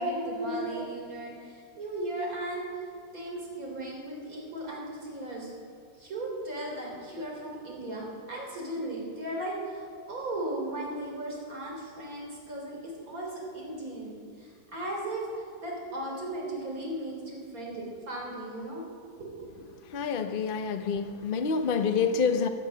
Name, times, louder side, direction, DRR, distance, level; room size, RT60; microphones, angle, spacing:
voice 1, 0.0-2.9 3.1-5.5 6.0-18.9 19.2-19.6, right 1 dB, 55° right, -2 dB, 3.9 m, -36 dB
voice 2, 19.9-22.5, left 5 dB, 40° left, 7 dB, 0.8 m, -27 dB
16.0 x 11.5 x 6.4 m, 2.2 s
omnidirectional pair, 1.8 m